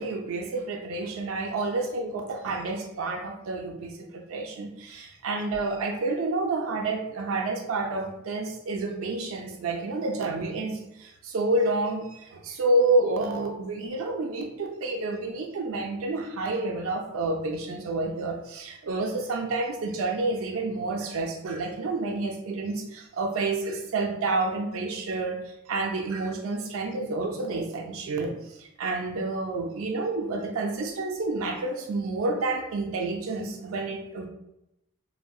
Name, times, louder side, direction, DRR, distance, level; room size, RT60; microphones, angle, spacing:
voice 1, 0.0-34.3, right 2 dB, 75° right, 2 dB, 0.4 m, -29 dB
3.5 x 2.0 x 2.3 m, 0.87 s
head